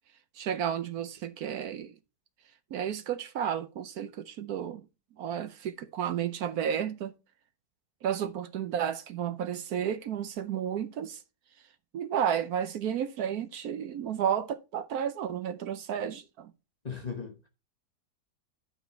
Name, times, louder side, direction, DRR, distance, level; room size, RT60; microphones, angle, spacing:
voice 1, 0.3-1.9 2.7-4.9 5.2-7.1 8.0-11.2 11.9-16.5, right 9 dB, 70° right, 1.1 m, -32 dB
voice 2, 16.8-17.5, left 5 dB, 30° left, 0.9 m, -37 dB
11.0 x 4.9 x 4.4 m
omnidirectional pair, 1.8 m